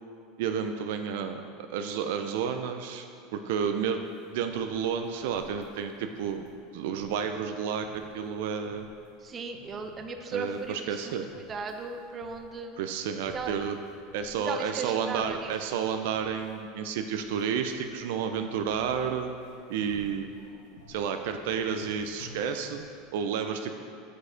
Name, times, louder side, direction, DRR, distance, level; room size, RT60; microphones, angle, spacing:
voice 1, 0.4-3.1 3.3-4.0 4.3-6.4 6.7-8.9 10.3-11.3 12.8-13.8 14.1-19.3 19.7-20.3 20.9-22.9 23.1-23.8, right 7 dB, 75° right, 6 dB, 0.4 m, -31 dB
sound 1, 3.9-23.0, left 2 dB, 80° left, 1.3 m, -55 dB
voice 2, 9.2-12.8 13.3-13.5 14.4-15.5, right 4 dB, 30° right, 5 dB, 0.6 m, -37 dB
6.3 x 4.9 x 5.0 m, 2.3 s
supercardioid pair, 115°, 0 cm